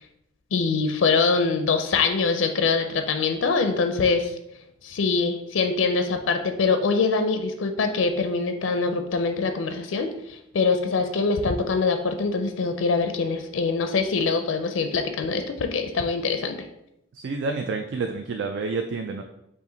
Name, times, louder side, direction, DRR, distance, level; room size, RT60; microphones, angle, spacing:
voice 1, 0.5-4.3 4.8-16.6, left 4 dB, 85° left, 7 dB, 0.4 m, -24 dB
voice 2, 17.1-19.2, right 4 dB, 65° right, 5 dB, 0.3 m, -29 dB
5.5 x 2.5 x 3.8 m, 0.84 s
head